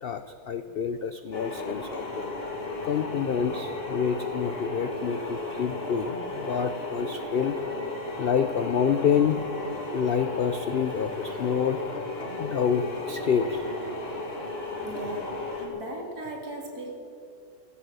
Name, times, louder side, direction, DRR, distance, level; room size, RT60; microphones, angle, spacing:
voice 1, 0.0-2.6 2.8-7.5 8.2-9.4 9.9-11.8 12.4-13.7 15.6-15.8, left 7 dB, 70° left, 10 dB, 0.5 m, -28 dB
sound 1, 1.3-15.7, left 2 dB, 40° left, 2.5 m, -35 dB
voice 2, 14.8-15.3 15.7-17.0, right 1 dB, 70° right, 1 dB, 2.9 m, -37 dB
15.0 x 12.5 x 6.7 m, 2.6 s
omnidirectional pair, 1.7 m